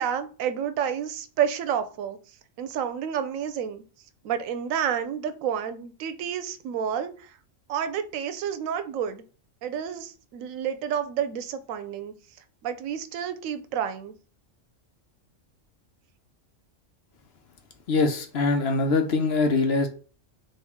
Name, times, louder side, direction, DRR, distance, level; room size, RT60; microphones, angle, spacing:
voice 1, 0.0-2.2 2.6-3.8 4.2-7.1 7.7-9.2 9.6-12.1 12.6-14.1, right 8 dB, 90° right, 10 dB, 1.0 m, -29 dB
voice 2, 17.9-19.9, left 3 dB, 60° left, 6 dB, 0.8 m, -23 dB
4.4 x 2.6 x 3.5 m, 0.38 s
omnidirectional pair, 1.3 m